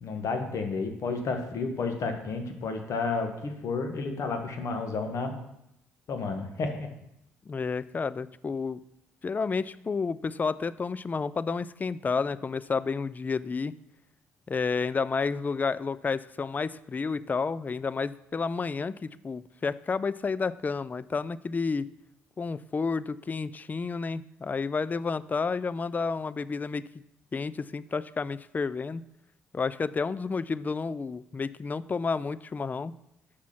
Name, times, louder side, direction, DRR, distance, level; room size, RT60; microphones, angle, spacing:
voice 1, 0.0-5.3 6.1-6.9, left 4 dB, 55° left, 5 dB, 1.3 m, -31 dB
voice 2, 7.5-8.8 9.2-13.7 14.5-21.9 22.4-26.8 27.3-29.0 29.5-32.9, left 4 dB, 25° left, 17 dB, 0.3 m, -30 dB
6.2 x 6.0 x 5.8 m, 0.82 s
figure-of-eight pair, 45°, 6 cm